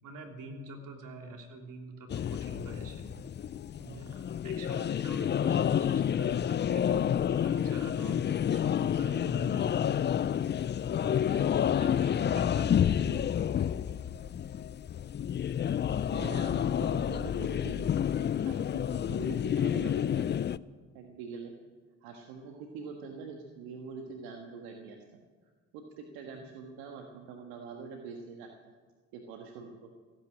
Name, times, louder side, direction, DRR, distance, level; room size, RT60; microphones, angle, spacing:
voice 1, 0.0-3.2 3.8-4.1 4.4-10.1 11.0-13.2, right 2 dB, 60° right, 2 dB, 3.3 m, -46 dB
sound 1, 2.1-20.6, left 9 dB, 30° left, 0.5 m, -29 dB
voice 2, 16.1-20.3 20.9-21.5 22.0-25.2 25.7-28.5 29.1-29.9, right 5 dB, 80° right, 2 dB, 1.6 m, -44 dB
15.5 x 9.3 x 9.9 m, 1.5 s
supercardioid pair, 65°, 35 cm